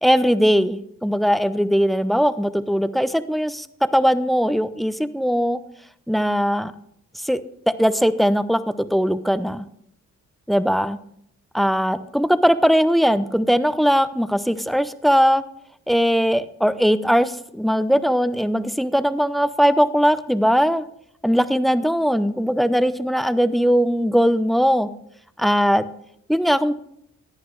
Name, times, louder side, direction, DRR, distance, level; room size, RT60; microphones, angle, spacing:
voice 1, 0.0-3.7 3.9-5.6 6.1-6.7 7.2-9.6 10.5-11.0 11.5-15.4 15.9-20.8 21.2-24.9 25.4-25.9 26.3-26.7, equal, ahead, 14 dB, 0.5 m, -19 dB
11.0 x 9.3 x 3.2 m, 0.73 s
supercardioid pair, 50°, 34 cm